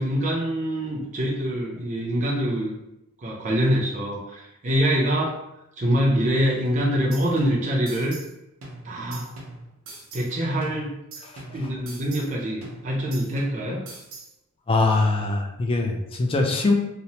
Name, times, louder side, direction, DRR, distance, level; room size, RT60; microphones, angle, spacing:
voice 1, 0.0-2.7 3.2-5.4 5.8-8.2 8.8-9.3 10.1-10.9 11.5-13.8, equal, 35° right, -3 dB, 0.5 m, -24 dB
sound 1, 6.6-8.3 8.6-10.3 10.6-12.3 12.6-14.3, right 2 dB, 80° right, 0.6 m, -42 dB
voice 2, 14.7-16.7, left 3 dB, 25° left, 2 dB, 0.3 m, -22 dB
2.9 x 2.0 x 2.7 m, 0.88 s
head